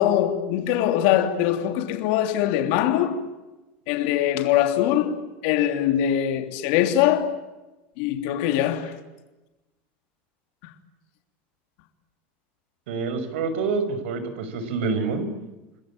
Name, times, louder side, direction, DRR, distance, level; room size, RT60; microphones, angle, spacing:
voice 1, 0.0-3.3 3.9-7.4 8.0-9.0, left 11 dB, 55° left, 3.2 m, -22 dB
voice 2, 12.9-15.3, right 4 dB, 90° right, 5.8 m, -27 dB
29.5 x 21.5 x 8.8 m
supercardioid pair, 170°, 6 cm